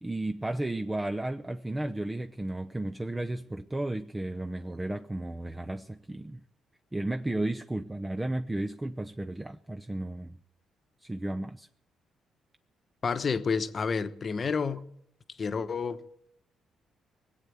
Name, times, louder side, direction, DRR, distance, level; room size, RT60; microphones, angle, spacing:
voice 1, 0.0-6.4 6.9-10.4 11.0-11.7, right 1 dB, 15° right, 0.6 m, -33 dB
voice 2, 13.0-14.9 15.4-16.3, left 5 dB, 40° left, 1.0 m, -30 dB
20.5 x 8.2 x 8.5 m
cardioid pair, 90°, 0 cm